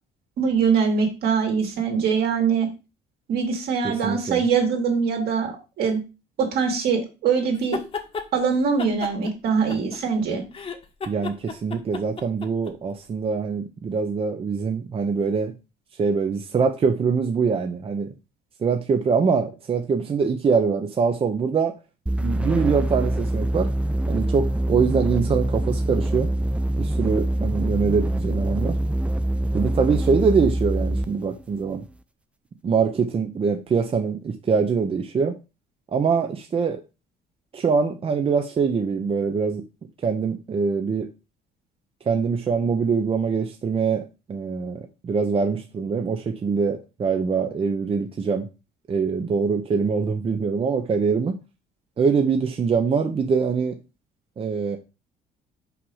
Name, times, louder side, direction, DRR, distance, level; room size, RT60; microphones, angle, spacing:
voice 1, 0.4-2.7 3.3-6.0 6.4-7.8 8.3-10.4, right 6 dB, 70° right, 2 dB, 2.8 m, -23 dB
voice 2, 3.8-4.4 11.1-15.5 16.0-18.1 18.6-21.7 22.2-23.7 24.1-26.3 26.8-28.8 29.5-31.8 32.6-35.4 35.9-36.8 37.5-39.6 40.0-41.1 42.1-48.5 48.9-51.4 52.0-53.8 54.4-54.8, right 5 dB, 35° right, 5 dB, 0.9 m, -23 dB
sound 1, 7.5-8.3 8.8-10.2 10.5-12.7, left 5 dB, 35° left, 1.3 m, -33 dB
sound 2, 22.1-31.2, right 1 dB, 5° right, 0.4 m, -24 dB
6.0 x 4.9 x 5.6 m, 0.29 s
cardioid pair, 110°, 17 cm